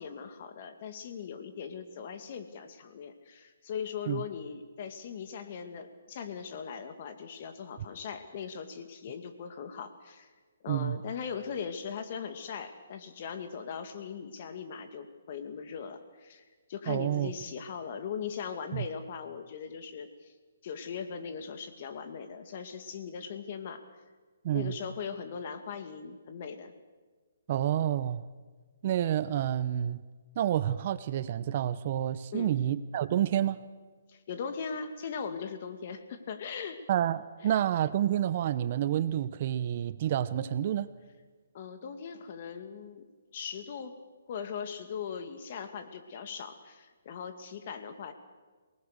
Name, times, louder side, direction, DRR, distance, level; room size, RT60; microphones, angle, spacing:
voice 1, 0.0-10.3 10.6-16.4 16.7-20.3 20.6-23.8 24.5-26.7 32.3-32.6 34.1-36.8 37.4-37.6 41.5-43.0 43.3-44.0 44.3-48.1, left 6 dB, 45° left, 8 dB, 2.2 m, -39 dB
voice 2, 10.7-11.0 16.9-17.3 18.7-18.9 24.4-24.8 27.5-28.2 28.8-30.0 30.4-33.6 36.9-40.9, right 11 dB, 45° right, 15 dB, 0.8 m, -29 dB
26.5 x 19.5 x 6.6 m, 1.4 s
hypercardioid pair, 150°, 0 cm